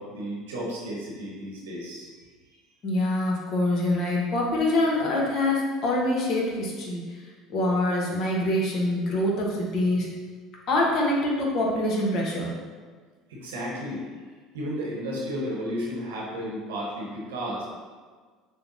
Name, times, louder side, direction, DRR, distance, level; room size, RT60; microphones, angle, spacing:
voice 1, 0.0-2.1 13.3-14.1 14.5-17.6, equal, 85° right, -4 dB, 0.9 m, -33 dB
voice 2, 2.8-10.1 10.7-12.5, left 1 dB, 55° left, -2 dB, 1.0 m, -25 dB
6.6 x 2.2 x 2.6 m, 1.5 s
hypercardioid pair, 75°, 0 cm